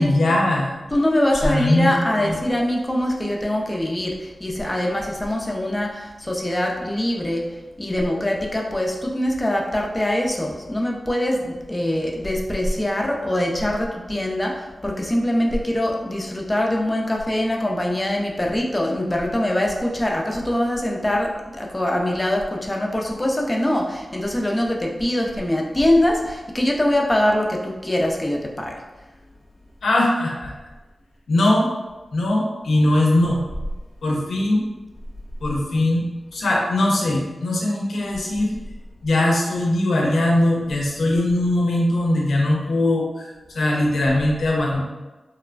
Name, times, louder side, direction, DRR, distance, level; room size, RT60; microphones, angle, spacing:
voice 1, 0.0-0.7 1.4-2.0 2.2-2.4 29.8-30.5 31.3-31.7 32.1-33.4 34.0-34.6 35.4-38.6 39.0-43.3 43.5-44.8, left 1 dB, 90° left, -2 dB, 0.5 m, -20 dB
voice 2, 0.9-28.8, left 1 dB, 20° left, -1 dB, 0.5 m, -23 dB
2.9 x 2.1 x 2.4 m, 1.2 s
cardioid pair, 45°, 0 cm